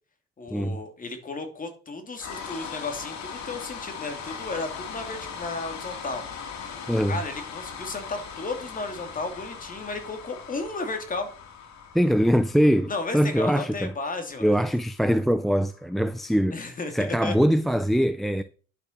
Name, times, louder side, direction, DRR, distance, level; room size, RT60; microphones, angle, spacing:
voice 1, 0.4-6.2 7.1-11.3 12.9-14.5 16.5-17.3, left 3 dB, 30° left, 2.7 m, -34 dB
sound 1, 2.2-16.3, left 6 dB, 70° left, 2.8 m, -40 dB
voice 2, 6.9-7.2 11.9-13.9 14.4-18.4, equal, ahead, 0.5 m, -23 dB
10.5 x 6.7 x 5.9 m
cardioid pair, 135°, 29 cm